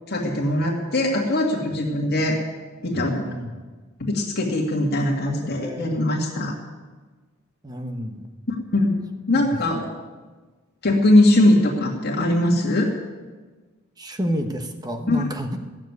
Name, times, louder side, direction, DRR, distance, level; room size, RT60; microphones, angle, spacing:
voice 1, 0.1-2.4 2.8-3.2 4.0-6.5 8.7-9.0 9.3-9.8 10.8-12.9 15.1-15.2, left 1 dB, 50° left, -2 dB, 2.1 m, -20 dB
voice 2, 3.0-3.7 5.2-6.0 7.6-8.2 9.3-9.6 14.0-15.6, equal, 20° right, 5 dB, 1.2 m, -30 dB
15.5 x 7.4 x 9.5 m, 1.3 s
head